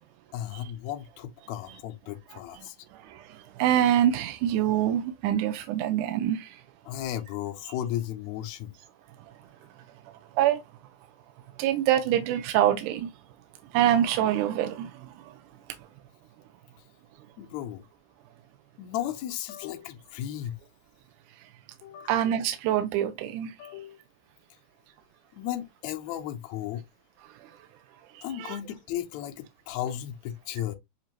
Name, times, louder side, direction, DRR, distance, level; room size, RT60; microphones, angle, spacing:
voice 1, 0.3-2.8 6.9-8.7 17.4-17.8 18.8-20.6 21.8-22.1 23.6-24.0 25.3-26.8 28.2-30.8, left 12 dB, 75° left, 1.8 m, -35 dB
voice 2, 3.0-6.6 10.4-10.6 11.6-13.1 13.7-15.1 22.1-23.5 28.2-28.6, right 11 dB, 85° right, 2.0 m, -25 dB
7.3 x 2.5 x 2.9 m
omnidirectional pair, 3.6 m